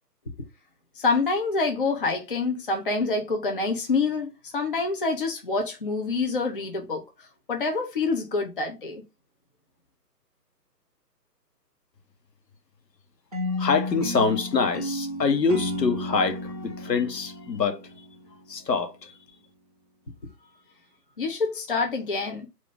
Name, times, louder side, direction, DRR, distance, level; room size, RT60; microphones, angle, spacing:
voice 1, 1.0-9.0 21.2-22.5, left 3 dB, 35° left, 0.6 m, -27 dB
sound 1, 13.3-18.4, left 1 dB, 25° right, 0.6 m, -33 dB
voice 2, 13.5-17.8 18.5-19.2, left 4 dB, 75° left, 1.3 m, -25 dB
4.6 x 2.6 x 3.8 m
figure-of-eight pair, 155°, 50 cm